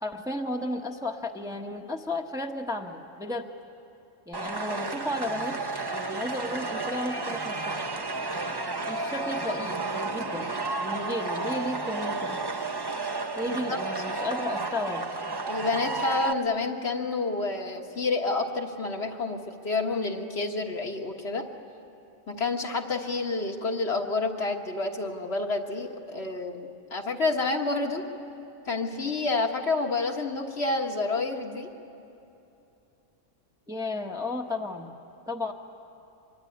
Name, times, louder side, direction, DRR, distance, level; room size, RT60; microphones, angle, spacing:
voice 1, 0.0-3.5 4.3-5.6 5.9-7.8 8.9-12.4 13.4-15.0 33.7-34.9 35.3-35.5, left 1 dB, 5° right, 2 dB, 1.1 m, -33 dB
sound 1, 4.3-16.3, right 3 dB, 20° right, 0.8 m, -32 dB
voice 2, 13.4-13.8 15.5-19.4 19.6-21.5 22.3-28.1 28.7-31.7, left 3 dB, 55° left, 2 dB, 1.7 m, -29 dB
24.5 x 23.0 x 9.8 m, 2.8 s
omnidirectional pair, 1.3 m